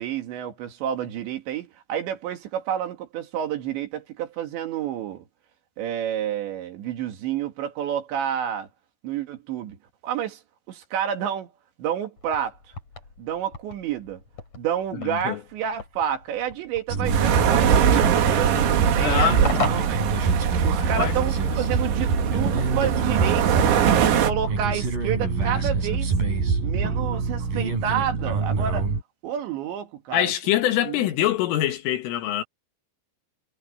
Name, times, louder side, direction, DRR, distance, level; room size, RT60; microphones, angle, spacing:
voice 1, 0.0-5.2 5.8-8.7 9.0-9.8 10.0-10.4 10.7-11.5 11.8-12.6 13.2-14.2 14.5-20.1 20.6-23.7 24.2-26.1 26.6-28.9 29.2-30.3 30.9-31.1, right 9 dB, 65° right, 3.9 m, -29 dB
sound 1, 12.2-20.9, left 3 dB, 35° left, 6.0 m, -38 dB
voice 2, 15.0-15.4 19.0-19.4 20.8-21.1 30.1-32.4, left 12 dB, 75° left, 4.3 m, -24 dB
sound 2, 16.9-29.0, right 4 dB, 45° right, 6.8 m, -25 dB
sound 3, 17.1-24.3, right 9 dB, 90° right, 5.3 m, -23 dB
omnidirectional pair, 5.9 m